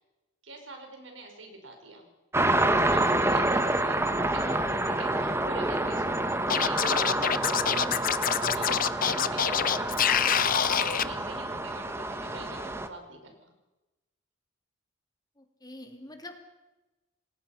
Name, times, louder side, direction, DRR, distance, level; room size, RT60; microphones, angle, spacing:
voice 1, 0.4-2.1 2.7-13.5, right 2 dB, 85° right, 4 dB, 5.3 m, -45 dB
sound 1, 2.3-12.9, right 1 dB, 15° right, 1.4 m, -28 dB
Scratching (performance technique), 6.5-11.0, left 9 dB, 50° left, 0.8 m, -26 dB
voice 2, 15.4-16.4, left 1 dB, 20° left, 4 dB, 2.9 m, -45 dB
29.0 x 20.5 x 5.9 m, 1.1 s
head